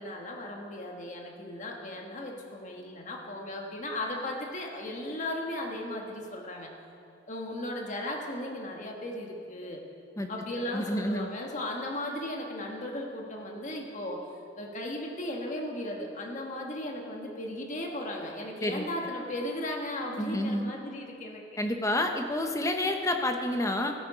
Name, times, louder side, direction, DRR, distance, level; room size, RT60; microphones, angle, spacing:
voice 1, 0.0-6.7 7.3-9.8 10.3-14.2 14.6-21.4, left 1 dB, 40° left, 1 dB, 1.5 m, -36 dB
voice 2, 10.7-11.3 18.6-18.9 20.2-20.7 21.6-23.9, left 1 dB, 15° left, 5 dB, 0.8 m, -29 dB
15.0 x 8.7 x 4.9 m, 2.5 s
head